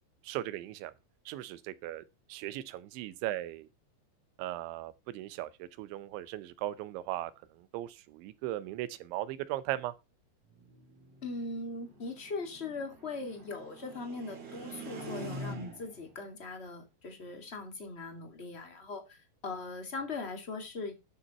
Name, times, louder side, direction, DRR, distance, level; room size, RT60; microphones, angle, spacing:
voice 1, 0.2-0.9 1.3-2.0 2.3-3.7 4.4-7.3 7.6-9.9, right 14 dB, 80° right, 3.3 m, -38 dB
sound 1, 10.6-16.1, right 1 dB, 35° right, 3.6 m, -44 dB
voice 2, 11.2-19.2 19.4-20.9, left 3 dB, 20° left, 1.7 m, -40 dB
12.0 x 7.1 x 4.3 m
omnidirectional pair, 5.4 m